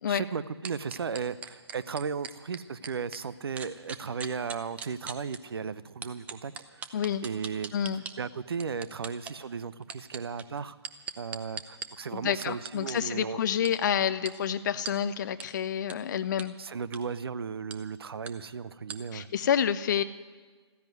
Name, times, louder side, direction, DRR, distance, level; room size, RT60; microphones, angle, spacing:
voice 1, 0.1-6.9 7.2-7.7 8.2-10.8 11.2-13.4 16.6-19.3, right 6 dB, 60° right, 17 dB, 0.7 m, -35 dB
sound 1, 0.6-3.2 3.6-5.4 6.0-8.1 8.6-9.3 9.8-11.9 12.4-12.9 13.6-13.7 14.3-14.4 14.9-15.0 15.4-15.5 15.9-16.0 16.4-16.5 16.8-17.0 17.7-17.8 18.3-18.4 18.9-19.0, right 6 dB, 10° right, 0.6 m, -39 dB
voice 2, 6.9-7.2 7.7-8.0 12.1-16.5 19.1-20.0, left 8 dB, 45° left, 11 dB, 0.5 m, -28 dB
14.5 x 10.5 x 9.3 m, 1.5 s
figure-of-eight pair, 135°, 14 cm